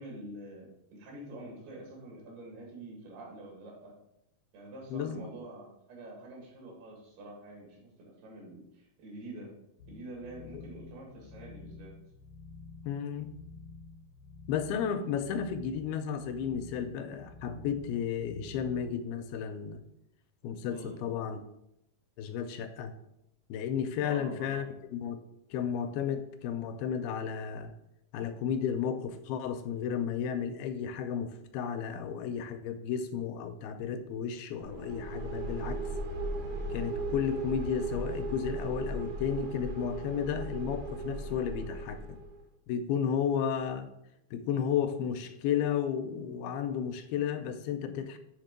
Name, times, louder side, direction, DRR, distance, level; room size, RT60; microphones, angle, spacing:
voice 1, 0.0-3.9 4.5-9.5 9.9-11.9 20.7-21.0 24.0-24.7, right 1 dB, 90° right, -2 dB, 4.0 m, -46 dB
voice 2, 4.9-5.3 10.5-10.6 12.8-13.4 14.5-19.8 20.4-21.4 22.2-22.9 23.5-24.7 24.9-25.2 25.5-27.7 28.1-35.8 36.7-42.2 42.7-43.9 44.3-48.2, left 8 dB, 90° left, 9 dB, 2.5 m, -33 dB
sound 1, 9.8-19.0, left 3 dB, 65° left, 2.0 m, -50 dB
sound 2, 34.6-42.4, right 2 dB, 65° right, 2.5 m, -37 dB
7.8 x 3.6 x 6.6 m, 0.83 s
omnidirectional pair, 4.3 m